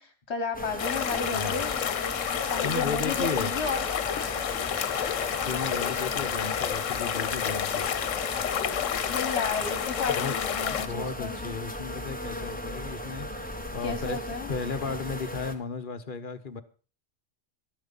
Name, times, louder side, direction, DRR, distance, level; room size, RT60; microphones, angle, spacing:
voice 1, 0.0-1.8 2.5-3.8 4.6-4.8 9.1-11.4 13.8-14.5, left 4 dB, 60° left, 8 dB, 1.6 m, -33 dB
sound 1, 0.5-15.5, left 1 dB, 5° left, 1.3 m, -37 dB
sound 2, 0.8-10.9, left 9 dB, 80° left, 1.2 m, -30 dB
voice 2, 1.3-1.6 2.6-3.6 5.4-7.9 10.1-13.3 13.7-14.2 14.5-16.6, left 4 dB, 45° left, 9 dB, 1.2 m, -34 dB
Tearing, 2.5-8.7, left 1 dB, 10° right, 4.4 m, -51 dB
13.0 x 12.0 x 5.5 m, 0.38 s
omnidirectional pair, 1.3 m